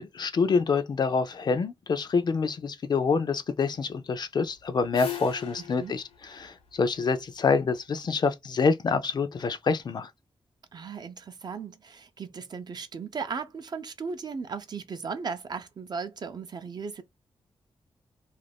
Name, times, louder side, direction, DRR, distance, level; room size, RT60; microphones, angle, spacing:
voice 1, 0.0-10.1, left 5 dB, 45° left, 0.4 m, -26 dB
sound 1, 4.4-7.6, left 10 dB, 80° left, 0.8 m, -41 dB
voice 2, 10.7-17.0, right 5 dB, 45° right, 0.4 m, -36 dB
2.5 x 2.2 x 3.4 m
wide cardioid pair, 120°, 10 cm